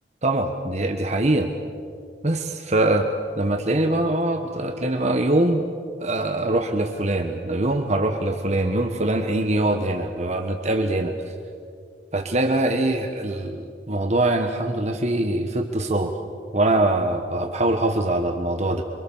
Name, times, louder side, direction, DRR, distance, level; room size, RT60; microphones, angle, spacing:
voice 1, 0.2-1.5 2.2-3.1 3.4-5.6 6.0-11.3 12.1-16.1 16.5-18.8, right 2 dB, 40° right, 4 dB, 1.3 m, -23 dB
27.5 x 24.0 x 7.3 m, 2.5 s
head